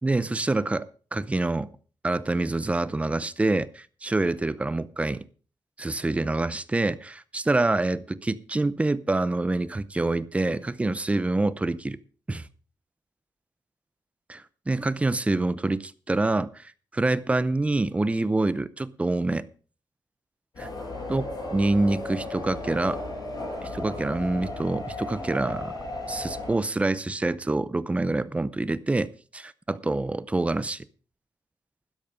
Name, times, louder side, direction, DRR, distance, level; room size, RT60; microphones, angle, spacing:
voice 1, 0.0-1.7 2.0-5.3 5.8-12.0 12.3-12.5 14.3-19.5 20.6-20.7 21.1-21.2 21.5-23.0 23.6-25.7 26.1-30.8, right 2 dB, 15° right, 0.6 m, -26 dB
sound 1, 20.5-26.5, left 2 dB, 60° left, 6.3 m, -35 dB
12.5 x 10.5 x 5.1 m
wide cardioid pair, 150°, 8 cm